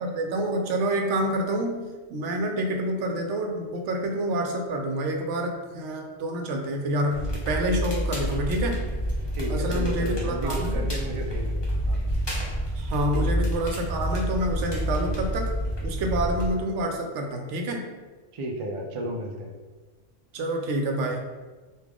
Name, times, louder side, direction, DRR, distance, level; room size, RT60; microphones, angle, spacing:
voice 1, 0.0-7.2 7.5-8.8 9.5-10.9 12.8-15.5 15.8-17.9 20.3-21.3, right 1 dB, 75° right, 2 dB, 0.9 m, -28 dB
Crackle, 7.1-16.5, equal, 25° left, 0.6 m, -28 dB
voice 2, 9.3-11.6 11.9-12.0 13.1-13.2 18.3-19.5, right 1 dB, 60° right, 0 dB, 0.3 m, -32 dB
3.4 x 2.4 x 3.5 m, 1.3 s
omnidirectional pair, 1.2 m